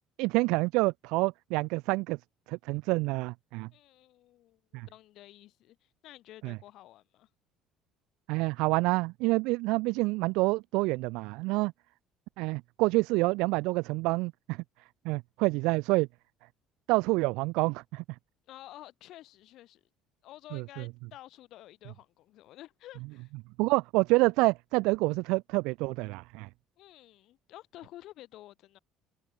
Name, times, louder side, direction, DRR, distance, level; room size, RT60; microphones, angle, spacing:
voice 1, 0.2-2.2 2.5-3.7 4.7-4.9 6.4-6.6 8.3-11.7 12.4-14.6 15.0-16.1 16.9-18.0 20.5-20.8 23.6-26.5, right 24 dB, 80° right, 0.6 m, -27 dB
voice 2, 3.7-7.3 18.5-19.8 20.2-23.3 26.8-28.8, left 15 dB, 60° left, 6.4 m, -51 dB
cardioid pair, 145°, 0 cm